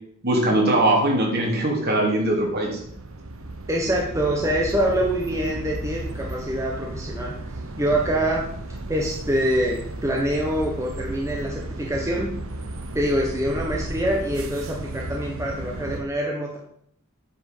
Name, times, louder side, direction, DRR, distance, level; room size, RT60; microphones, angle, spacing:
voice 1, 0.2-2.8, right 1 dB, 50° right, 0 dB, 3.0 m, -21 dB
sound 1, 2.2-16.0, right 2 dB, 70° right, 1.1 m, -34 dB
voice 2, 3.7-7.3 7.8-8.5 8.9-12.3 12.9-16.6, right 1 dB, 15° right, -1 dB, 1.2 m, -25 dB
8.9 x 6.0 x 7.4 m, 0.68 s
head